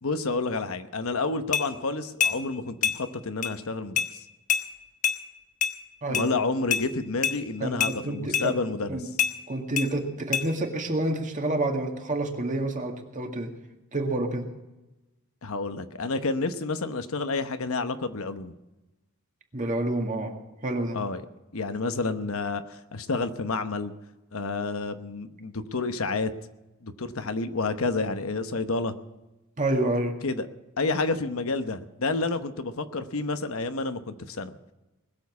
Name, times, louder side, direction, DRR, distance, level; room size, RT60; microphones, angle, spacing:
voice 1, 0.0-4.2 6.1-9.1 15.4-18.5 20.9-21.2 21.5-23.9 24.3-26.3 26.8-28.9 30.2-30.5 30.8-34.5, left 3 dB, 70° left, 9 dB, 1.0 m, -29 dB
sound 1, 1.5-1.7 2.2-2.4 2.8-3.0 3.4-3.5 4.0-4.1 4.5-4.6 5.0-5.2 5.6-5.7 6.1-6.3 6.7-6.8 7.2-7.4 7.8-7.9 8.3-8.5 9.2-9.3 9.8-9.9 10.3-10.5, left 8 dB, 35° left, 1.2 m, -25 dB
voice 2, 7.6-8.5 8.9-9.1 9.5-13.5 13.9-14.5 19.5-20.3 20.6-21.0 29.6-30.1, right 1 dB, 35° right, 3 dB, 1.9 m, -28 dB
20.5 x 7.2 x 8.3 m, 1.0 s
head